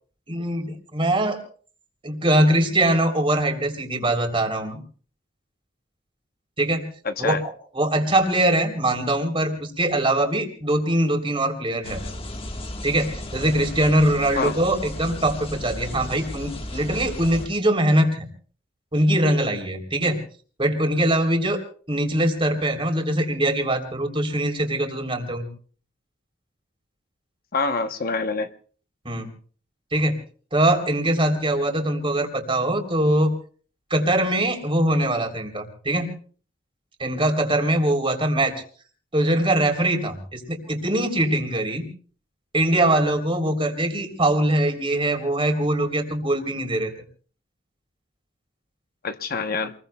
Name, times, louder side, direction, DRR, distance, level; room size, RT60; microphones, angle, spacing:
voice 1, 0.3-1.4 2.0-4.8 6.6-6.8 7.2-7.4 7.7-12.0 12.8-18.3 18.9-20.2 20.6-21.6 21.9-25.5 29.0-29.3 29.9-30.2 30.5-33.3 33.9-36.1 37.0-38.5 39.1-41.9 42.5-46.9, right 1 dB, 30° right, 3.5 m, -22 dB
voice 2, 7.0-7.4 14.4-14.5 27.5-28.5 49.0-49.7, left 4 dB, 50° left, 0.9 m, -26 dB
sound 1, 11.8-17.5, left 1 dB, 30° left, 1.5 m, -34 dB
28.0 x 21.5 x 2.3 m
head